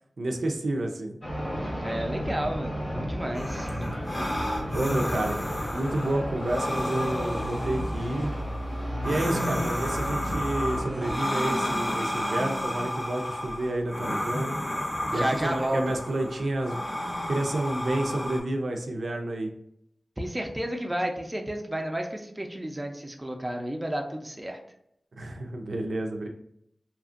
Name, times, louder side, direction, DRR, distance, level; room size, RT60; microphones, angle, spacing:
voice 1, 0.2-1.2 4.7-5.4 5.7-8.3 9.0-14.5 15.1-16.8 17.3-19.5 25.2-26.3, right 1 dB, 75° right, 3 dB, 0.4 m, -30 dB
sound 1, 1.2-11.2, equal, 45° left, 0.9 m, -33 dB
voice 2, 1.8-3.7 15.1-15.8 20.2-24.6, right 1 dB, 15° right, 2 dB, 0.4 m, -31 dB
sound 2, 3.3-18.4, left 1 dB, 25° left, 0.7 m, -32 dB
2.8 x 2.5 x 2.4 m, 0.74 s
wide cardioid pair, 65°, 0 cm